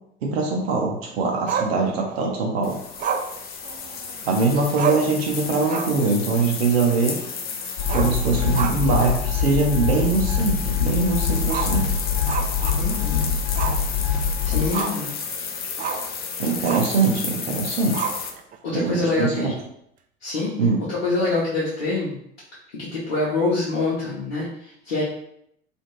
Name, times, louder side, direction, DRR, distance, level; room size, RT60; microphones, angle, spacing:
voice 1, 0.2-2.8 4.3-7.2 7.9-11.9 14.5-14.6 16.4-18.1 18.7-19.5 20.6-20.8, right 3 dB, 80° right, -1 dB, 0.6 m, -22 dB
Growling, 1.5-2.3 3.0-4.2 4.5-4.6 4.8-5.2 5.6-6.1 6.4-6.5 7.8-9.1 9.4-9.5 10.0-10.1 11.4-13.1 13.6-13.8 14.2-15.1 15.8-16.1 16.6-17.0 17.9-18.6, right 7 dB, 30° right, 0.3 m, -29 dB
sound 1, 2.6-18.3, left 6 dB, 30° left, 0.5 m, -32 dB
sound 2, 7.8-14.7, left 6 dB, 60° left, 1.0 m, -24 dB
voice 2, 12.8-13.3 14.4-15.2 18.6-19.5 20.2-20.5 20.9-22.1 22.7-25.0, left 3 dB, 85° left, -8 dB, 0.9 m, -25 dB
2.5 x 2.4 x 3.0 m, 0.73 s
hypercardioid pair, 70°, 30 cm